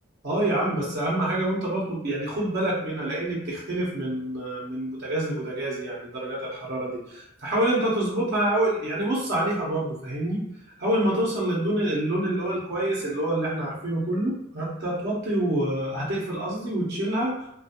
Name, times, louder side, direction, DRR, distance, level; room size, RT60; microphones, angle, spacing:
voice 1, 0.2-10.4 10.8-17.4, right 1 dB, 55° right, -5 dB, 0.7 m, -27 dB
2.4 x 2.2 x 2.7 m, 0.76 s
head